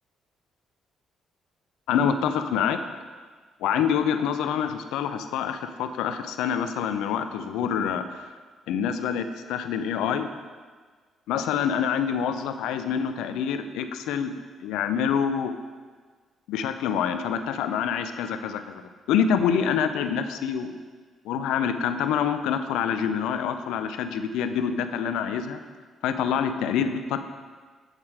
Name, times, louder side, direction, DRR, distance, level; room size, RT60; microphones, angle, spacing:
voice 1, 1.9-2.8 3.6-8.3 8.7-10.3 11.3-14.3 14.6-15.5 16.5-18.8 19.1-20.7 21.2-25.6 26.0-27.2, left 7 dB, 75° left, 9 dB, 0.5 m, -26 dB
8.2 x 7.3 x 4.7 m, 1.5 s
hypercardioid pair, 45°, 0 cm